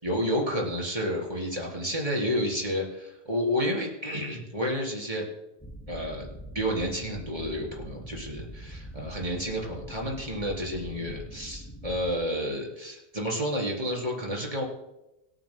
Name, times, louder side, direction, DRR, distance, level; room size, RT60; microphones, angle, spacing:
voice 1, 0.0-5.3 5.9-14.6, equal, 30° right, -1 dB, 3.7 m, -30 dB
sound 1, 5.6-12.2, equal, 10° left, 2.6 m, -43 dB
25.5 x 9.1 x 2.2 m, 0.90 s
omnidirectional pair, 1.2 m